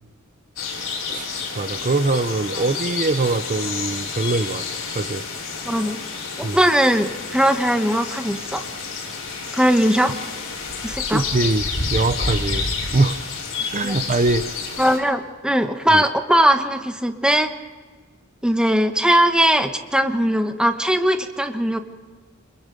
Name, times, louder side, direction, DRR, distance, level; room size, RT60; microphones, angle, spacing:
sound 1, 0.6-15.0, left 4 dB, 70° left, 5.1 m, -29 dB
voice 1, 1.6-5.2 6.4-6.6 11.1-12.7 12.9-13.2 13.7-14.5 15.9-16.0, right 2 dB, 40° right, 11 dB, 0.7 m, -22 dB
voice 2, 5.6-6.0 6.4-8.6 9.5-10.1 10.8-11.2 13.8-14.0 14.8-17.5 18.4-21.8, equal, 5° right, 7 dB, 1.1 m, -19 dB
26.0 x 21.5 x 5.2 m, 1.4 s
head